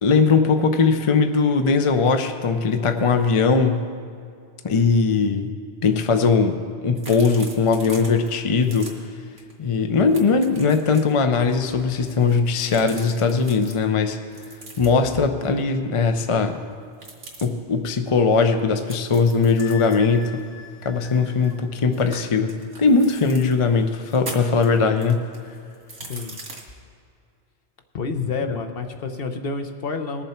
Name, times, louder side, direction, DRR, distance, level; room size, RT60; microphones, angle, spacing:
voice 1, 0.0-3.8 4.6-5.5 5.8-8.9 9.6-14.2 14.8-16.6 17.4-20.4 20.8-25.3 28.5-28.6, left 4 dB, 35° left, 7 dB, 0.5 m, -20 dB
sound 1, 7.0-8.3 8.6-8.9 9.4-9.5 9.8-11.1 11.9-13.8 14.3-15.1 16.9-17.5 18.9-21.6 21.9-23.6 24.0-26.6, right 2 dB, 85° right, 2.2 m, -41 dB
Wind instrument woodwind instrument, 19.6-21.6, left 6 dB, 90° left, 1.6 m, -42 dB
voice 2, 27.9-30.2, left 4 dB, 55° left, 6 dB, 1.0 m, -29 dB
20.5 x 7.1 x 4.3 m, 2.4 s
omnidirectional pair, 1.2 m